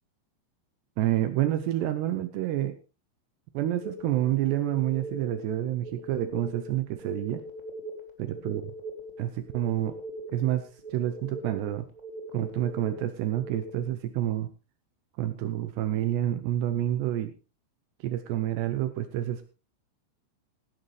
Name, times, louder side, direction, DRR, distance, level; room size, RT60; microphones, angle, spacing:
voice 1, 1.0-2.8 3.5-7.4 8.2-8.7 9.2-10.0 10.3-11.9 12.3-14.5 15.2-17.3 18.0-19.4, right 13 dB, 75° right, 10 dB, 2.6 m, -28 dB
sound 1, 3.8-13.8, right 1 dB, 50° right, 0.5 m, -41 dB
16.5 x 11.0 x 3.3 m, 0.32 s
omnidirectional pair, 5.6 m